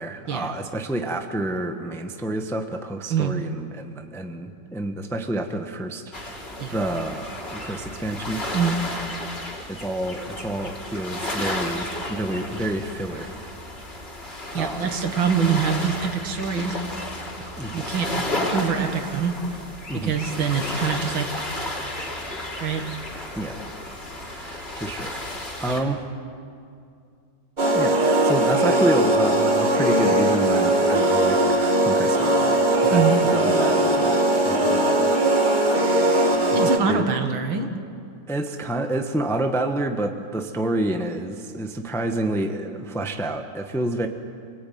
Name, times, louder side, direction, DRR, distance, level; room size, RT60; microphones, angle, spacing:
voice 1, 0.0-6.0 6.3-6.4 6.7-8.4 9.7-13.4 14.5-14.9 17.4-17.9 19.9-20.1 23.4-23.6 24.2-25.2 25.6-26.0 27.7-35.1 35.9-36.3 36.8-37.1 38.3-44.1, right 1 dB, ahead, 5 dB, 0.9 m, -28 dB
sound 1, 6.1-25.8, left 1 dB, 30° left, 3.3 m, -33 dB
voice 2, 14.5-16.8 17.7-18.2 18.5-19.4 19.9-21.6 22.6-22.9 25.7-25.8 32.9-33.2 36.5-37.8, right 6 dB, 70° right, 6 dB, 2.5 m, -24 dB
sound 2, 27.6-36.8, right 1 dB, 25° right, 1.8 m, -20 dB
27.5 x 19.5 x 9.4 m, 2.4 s
omnidirectional pair, 2.3 m